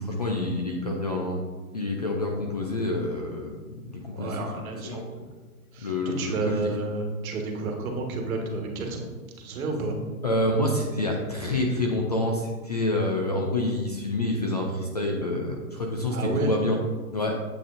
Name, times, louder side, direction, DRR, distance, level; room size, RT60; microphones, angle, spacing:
voice 1, 0.0-1.4 1.7-4.4 4.8-5.3 5.8-6.6 10.2-16.8 17.1-17.4, left 1 dB, 30° left, 0 dB, 0.3 m, -27 dB
voice 2, 4.1-5.1 5.7-9.1 9.4-10.0 16.1-16.5, right 3 dB, 65° right, 2 dB, 1.5 m, -30 dB
7.5 x 6.7 x 2.5 m, 1.4 s
hypercardioid pair, 155°, 45 cm